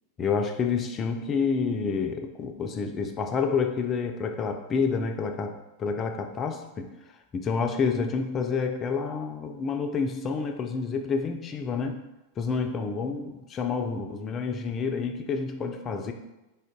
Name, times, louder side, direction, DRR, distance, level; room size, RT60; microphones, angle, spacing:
voice 1, 0.2-6.9 7.3-12.0 12.4-16.1, left 5 dB, 25° left, 5 dB, 0.3 m, -29 dB
3.5 x 2.1 x 3.6 m, 1.0 s
figure-of-eight pair, 90°, 0 cm